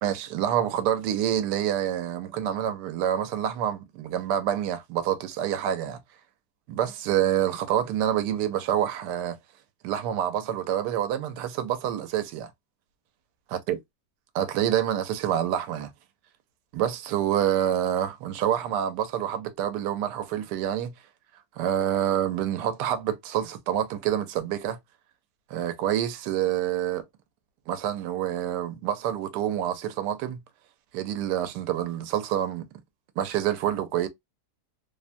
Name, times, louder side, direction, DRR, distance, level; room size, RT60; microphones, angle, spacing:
voice 1, 0.0-6.0 6.7-9.4 9.8-12.5 13.5-13.8 14.3-15.9 16.7-20.9 21.6-24.8 25.5-27.0 27.7-30.4 30.9-32.7 33.2-34.1, right 10 dB, 85° right, 1.2 m, -27 dB
3.0 x 2.1 x 2.4 m
omnidirectional pair, 1.8 m